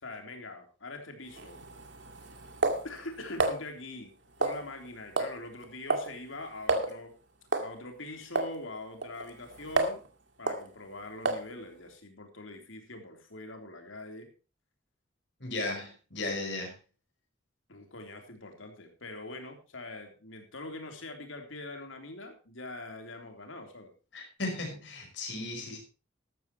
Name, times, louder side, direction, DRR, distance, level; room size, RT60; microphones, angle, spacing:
voice 1, 0.0-1.6 2.8-4.1 4.4-7.1 7.6-10.0 10.4-14.3 17.7-23.9, left 2 dB, 90° left, 4 dB, 3.5 m, -43 dB
sound 1, 1.3-3.6 4.4-4.9 5.2-5.4 5.6-6.1 6.4-6.5 6.7-6.9 7.5-7.7 8.4-8.5 9.0-10.1 10.5-10.6 11.3-11.5, right 3 dB, 60° right, 2.2 m, -30 dB
voice 2, 15.4-16.7 24.1-25.8, left 2 dB, 60° left, 0 dB, 5.5 m, -35 dB
13.5 x 13.0 x 3.0 m, 0.33 s
head